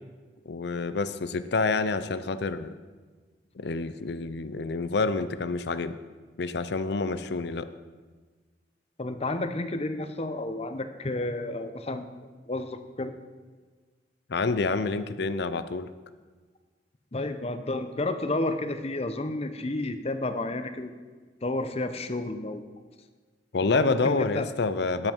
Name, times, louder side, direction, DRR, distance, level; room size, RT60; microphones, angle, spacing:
voice 1, 0.5-2.7 3.6-6.0 6.4-7.7 14.3-15.9 23.5-25.1, left 3 dB, 65° left, 12 dB, 0.6 m, -28 dB
voice 2, 9.0-12.1 12.5-13.1 17.1-20.9 21.4-22.6 23.6-24.5, left 2 dB, 35° left, 9 dB, 0.8 m, -31 dB
18.5 x 7.7 x 4.6 m, 1.4 s
head